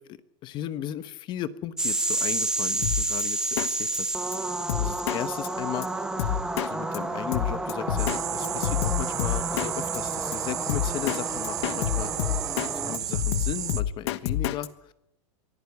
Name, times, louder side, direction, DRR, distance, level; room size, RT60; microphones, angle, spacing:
voice 1, 0.0-4.3 4.8-6.4 6.7-12.1 12.7-14.9, left 12 dB, 30° left, 16 dB, 1.0 m, -36 dB
sound 1, 1.8-13.0, right 2 dB, 5° right, 1.2 m, -30 dB
Drum kit, 2.8-3.2 3.6-3.7 3.9-4.0 4.3-4.4 4.7-5.2 5.4-5.5 5.8-5.9 6.2-6.7 6.9-7.0 7.3-8.2 8.4-9.7 9.9-10.0 10.3-10.4 10.7-11.2 11.4-12.7 12.9-14.7, left 11 dB, 55° left, 1.3 m, -27 dB
sound 2, 8.0-13.8, right 11 dB, 20° right, 0.7 m, -33 dB
24.0 x 15.0 x 8.2 m, 0.81 s
supercardioid pair, 160°, 16 cm